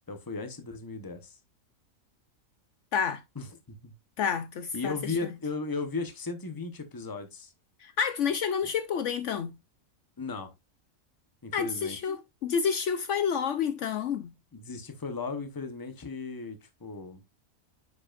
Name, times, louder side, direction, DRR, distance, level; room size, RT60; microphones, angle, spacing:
voice 1, 0.1-1.4 3.4-3.9 4.7-7.5 10.2-10.5 11.4-12.0 14.5-17.2, left 4 dB, 20° left, 0.9 m, -36 dB
voice 2, 2.9-3.2 4.2-5.1 7.8-9.5 11.5-14.3, left 7 dB, 65° left, 0.9 m, -29 dB
9.5 x 5.1 x 2.4 m
omnidirectional pair, 1.4 m